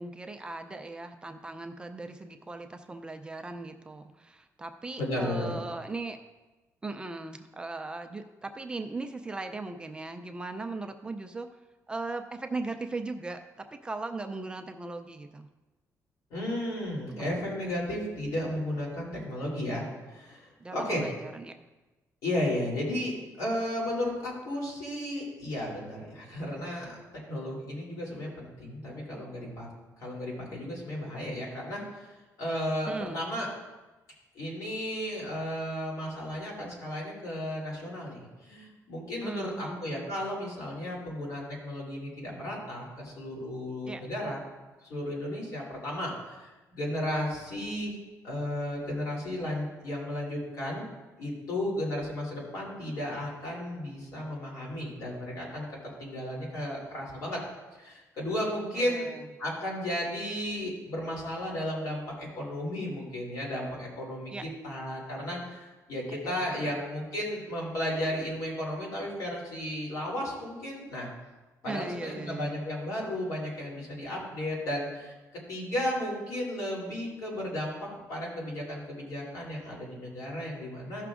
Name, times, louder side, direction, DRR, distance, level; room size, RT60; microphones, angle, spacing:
voice 1, 0.0-6.2 6.8-11.5 11.9-15.5 17.1-17.2 20.6-21.6 32.9-33.3 39.2-40.1 43.9-44.0 58.7-59.3 64.3-64.4 66.2-66.5 71.6-72.7, right 3 dB, 15° right, 5 dB, 0.3 m, -38 dB
voice 2, 5.0-5.6 16.3-21.1 22.2-27.0 27.3-29.7 30.0-32.1 32.4-33.5 34.3-44.4 44.8-47.9 48.2-50.8 51.2-57.4 57.8-59.1 59.4-71.1 71.6-75.1 75.5-81.1, left 1 dB, 65° left, -3 dB, 2.9 m, -34 dB
15.0 x 5.9 x 2.4 m, 1.1 s
cardioid pair, 175°, 6 cm